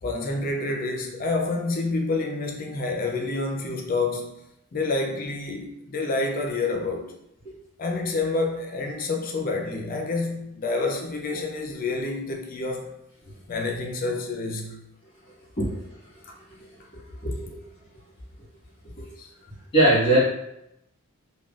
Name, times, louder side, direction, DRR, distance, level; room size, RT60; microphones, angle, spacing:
voice 1, 0.0-4.4 4.7-7.1 7.8-12.9 13.5-14.8 19.2-19.3, left 3 dB, 40° left, 0.5 m, -28 dB
voice 2, 16.9-17.6 19.7-20.2, right 1 dB, 25° left, 1.3 m, -22 dB
3.5 x 2.2 x 2.3 m
head